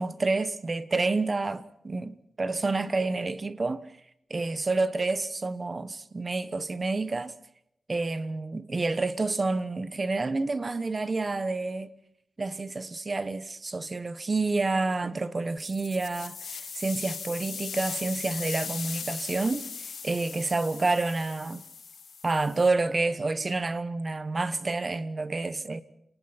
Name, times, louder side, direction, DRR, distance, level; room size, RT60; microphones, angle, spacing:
voice 1, 0.0-3.8 4.3-7.3 7.9-11.9 12.4-21.6 22.2-25.8, right 3 dB, 30° right, 1.2 m, -29 dB
sound 1, 15.6-22.7, left 6 dB, 70° left, 7.6 m, -38 dB
28.0 x 19.5 x 6.0 m
wide cardioid pair, 135°, 0 cm